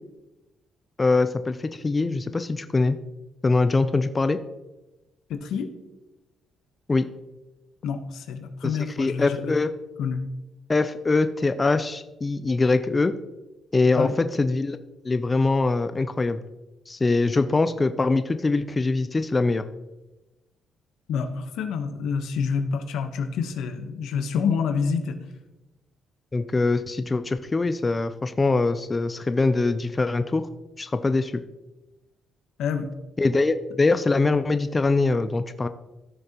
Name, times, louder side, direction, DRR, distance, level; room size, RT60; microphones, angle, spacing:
voice 1, 1.0-3.0 3.4-4.4 6.9-7.1 8.6-9.7 10.7-13.1 13.7-14.1 14.4-14.8 15.0-16.4 16.9-19.6 26.3-30.5 30.8-31.4 33.2-35.7, left 3 dB, 25° left, 10 dB, 0.5 m, -23 dB
voice 2, 5.3-5.7 7.8-9.5 10.0-10.2 13.9-14.1 21.1-25.2 32.6-32.9, left 6 dB, 85° left, 7 dB, 1.0 m, -27 dB
15.5 x 6.4 x 3.0 m, 1.0 s
cardioid pair, 90°, 0 cm